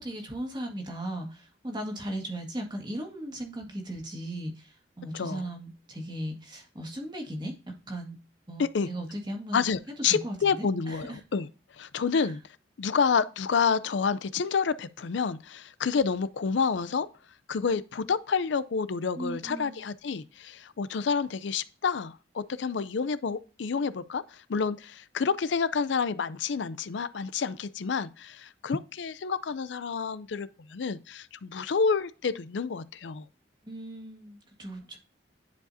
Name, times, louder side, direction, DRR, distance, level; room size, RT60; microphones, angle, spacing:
voice 1, 0.0-7.5 7.9-8.2 8.5-9.6 10.0-11.2 12.1-12.3 19.1-19.8 33.6-35.0, right 1 dB, 25° right, 1.7 m, -37 dB
voice 2, 9.5-11.5 11.8-12.4 12.8-17.1 17.5-33.2, left 5 dB, 75° left, 0.5 m, -29 dB
10.5 x 4.9 x 2.7 m
head